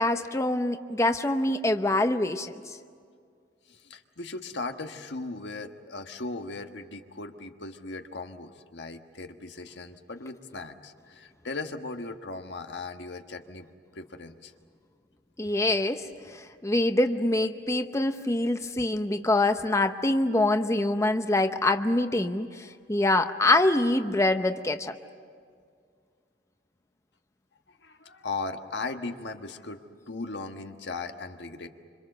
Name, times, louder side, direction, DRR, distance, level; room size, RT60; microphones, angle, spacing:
voice 1, 0.0-2.5 15.4-16.0 16.3-24.9, left 2 dB, 15° left, 8 dB, 0.7 m, -25 dB
voice 2, 3.7-13.7 13.9-14.5 27.7-31.7, left 3 dB, 80° left, 6 dB, 1.5 m, -38 dB
26.5 x 26.0 x 6.8 m, 2.1 s
head